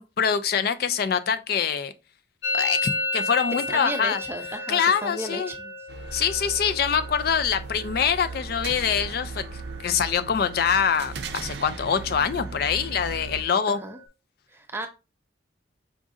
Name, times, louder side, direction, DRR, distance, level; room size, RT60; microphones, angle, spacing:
voice 1, 0.0-1.9 2.5-4.2 4.7-5.5 6.1-9.4 9.8-13.8, left 7 dB, 55° left, 0.3 m, -24 dB
Musical instrument, 2.4-10.1 10.3-10.9 11.2-11.8 12.0-14.0, left 2 dB, 75° left, 0.7 m, -34 dB
voice 2, 3.7-5.7 13.7-14.0 14.5-14.9, right 1 dB, 15° right, 0.6 m, -34 dB
sound 1, 5.9-13.4, right 4 dB, 60° right, 0.5 m, -37 dB
5.0 x 2.5 x 3.6 m
head